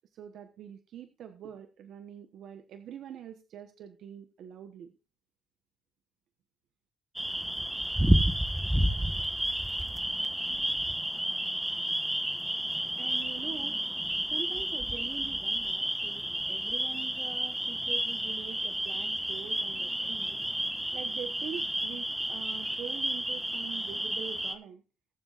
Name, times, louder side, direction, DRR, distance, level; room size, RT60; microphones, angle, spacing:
voice 1, 0.1-4.9 13.0-13.8 14.3-24.8, right 9 dB, 75° right, 8 dB, 1.1 m, -44 dB
sound 1, 7.2-24.5, right 1 dB, 5° right, 1.3 m, -31 dB
21.0 x 7.5 x 2.5 m, 0.30 s
cardioid pair, 90°, 0 cm